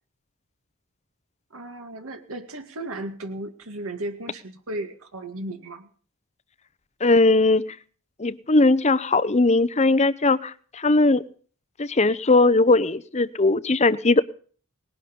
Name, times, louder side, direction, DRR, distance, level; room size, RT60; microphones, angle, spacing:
voice 1, 1.5-5.9, right 1 dB, 70° right, 5 dB, 2.1 m, -35 dB
voice 2, 7.0-7.6 8.2-11.2 11.8-14.2, left 2 dB, 30° left, 16 dB, 0.8 m, -19 dB
19.5 x 11.0 x 5.3 m, 0.43 s
head